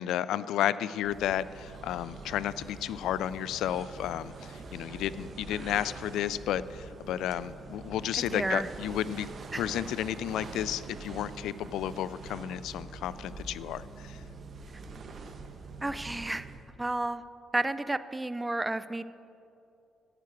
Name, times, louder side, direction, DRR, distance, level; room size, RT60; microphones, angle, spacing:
voice 1, 0.0-14.2, left 11 dB, 85° left, 16 dB, 0.3 m, -32 dB
sound 1, 1.0-16.8, right 3 dB, 50° right, 1.0 m, -44 dB
voice 2, 8.1-8.7 9.5-9.6 15.8-16.5 16.8-17.2 17.5-19.0, right 2 dB, 15° right, 14 dB, 0.5 m, -31 dB
14.0 x 9.5 x 4.6 m, 2.6 s
cardioid pair, 90°, 0 cm